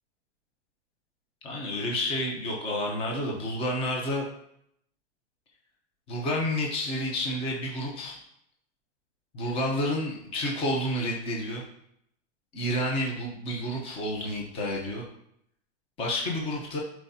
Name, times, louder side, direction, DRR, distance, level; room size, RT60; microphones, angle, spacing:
voice 1, 1.4-4.2 6.1-8.1 9.3-11.6 12.5-15.0 16.0-16.8, left 1 dB, 15° left, -1 dB, 0.9 m, -30 dB
11.0 x 4.6 x 2.8 m, 0.74 s
supercardioid pair, 165°, 36 cm